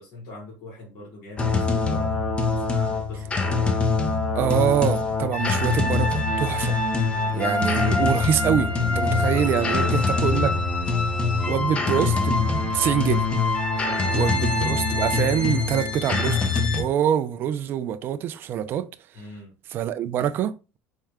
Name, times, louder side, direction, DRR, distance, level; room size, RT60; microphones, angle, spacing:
voice 1, 0.0-3.6 7.0-7.7 9.6-10.6 13.7-14.3 19.1-19.5, left 2 dB, 60° left, 2.0 m, -41 dB
sound 1, 1.4-16.8, left 3 dB, 20° left, 0.6 m, -23 dB
voice 2, 4.3-6.8 7.3-10.5 11.5-13.3 14.2-18.9 19.7-20.8, right 10 dB, 40° right, 0.3 m, -25 dB
4.5 x 2.1 x 3.5 m
cardioid pair, 140°, 5 cm